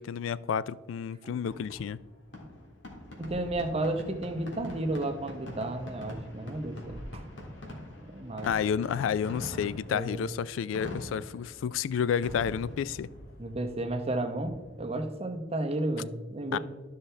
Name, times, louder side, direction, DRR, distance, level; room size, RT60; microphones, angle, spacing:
voice 1, 0.0-2.0 8.5-13.1 16.5-16.6, left 7 dB, 90° left, 0.3 m, -30 dB
Fireworks, 1.5-15.0, left 1 dB, 75° left, 1.8 m, -44 dB
voice 2, 3.2-7.2 8.1-8.5 9.9-10.2 13.4-16.6, right 2 dB, 30° right, 0.8 m, -32 dB
12.5 x 5.6 x 3.3 m
head